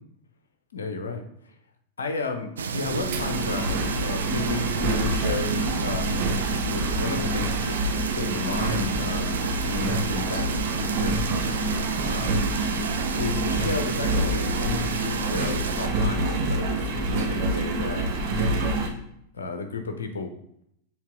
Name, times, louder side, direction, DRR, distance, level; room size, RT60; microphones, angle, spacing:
voice 1, 0.7-1.3 2.0-6.3 6.6-7.8 8.1-11.2 12.0-12.5 13.2-18.1 19.3-20.3, left 4 dB, 70° left, 6 dB, 0.8 m, -33 dB
sound 1, 2.6-15.9, right 6 dB, 70° right, 0.5 m, -33 dB
Engine, 2.9-18.9, right 2 dB, 50° right, 1.0 m, -27 dB
7.3 x 3.8 x 3.7 m, 0.72 s
figure-of-eight pair, 90°, 0 cm